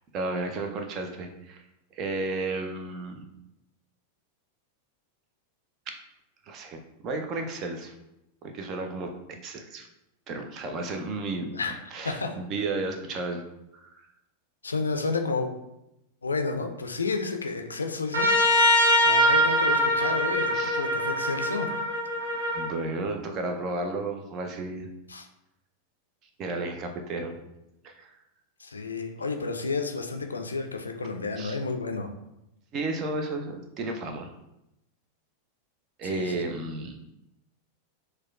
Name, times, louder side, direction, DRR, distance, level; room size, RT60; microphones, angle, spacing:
voice 1, 0.1-1.6 1.9-3.1 5.9-6.0 6.5-7.9 8.4-9.9 10.3-11.6 11.9-13.4 13.7-14.1 20.5-20.8 22.5-24.9 26.4-27.4 27.8-28.1 31.4-31.6 32.7-34.3 36.0-37.0, right 2 dB, 35° right, 4 dB, 0.5 m, -33 dB
voice 2, 11.5-12.4 14.6-15.5 16.2-18.3 18.8-21.7 25.1-25.3 28.6-32.1 36.0-36.4, left 4 dB, 75° left, 5 dB, 0.4 m, -31 dB
Trumpet, 18.1-22.7, equal, 75° right, 0.8 m, -23 dB
6.1 x 2.2 x 2.3 m, 0.89 s
figure-of-eight pair, 90°, 0 cm